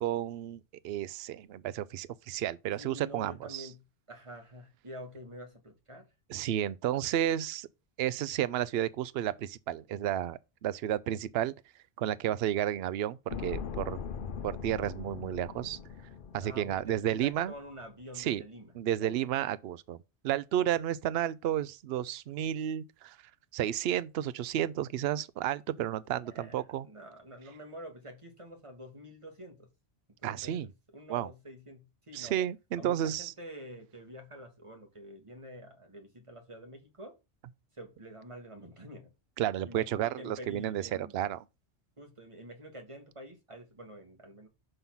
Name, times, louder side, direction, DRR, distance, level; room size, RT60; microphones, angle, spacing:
voice 1, 0.0-3.7 6.3-7.7 8.0-11.5 12.0-14.0 14.4-15.8 16.3-17.5 18.2-18.4 18.8-20.0 20.2-23.2 23.5-26.9 30.2-30.7 31.1-31.3 32.1-33.3 39.4-41.4, right 11 dB, 65° right, 0.8 m, -32 dB
voice 2, 2.8-3.8 4.1-6.1 16.4-18.7 19.0-19.1 26.1-29.7 30.2-32.5 32.8-37.2 37.7-39.1 39.6-41.2 42.0-44.5, equal, 25° right, 1.8 m, -47 dB
sound 1, 13.3-17.6 17.8-17.9, left 6 dB, 55° left, 0.8 m, -41 dB
5.6 x 5.5 x 5.8 m
omnidirectional pair, 1.2 m